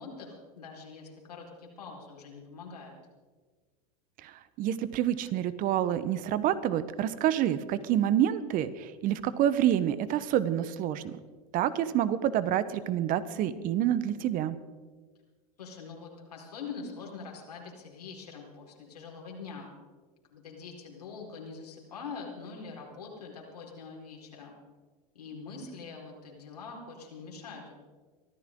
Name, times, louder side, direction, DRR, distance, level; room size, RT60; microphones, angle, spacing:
voice 1, 0.0-3.0 15.6-19.7 20.3-24.5 25.1-27.7, left 4 dB, 85° left, -2 dB, 4.4 m, -44 dB
voice 2, 4.6-11.2 11.5-14.6, right 11 dB, 45° right, 15 dB, 1.1 m, -28 dB
23.5 x 14.5 x 3.8 m, 1.4 s
hypercardioid pair, 95°, 20 cm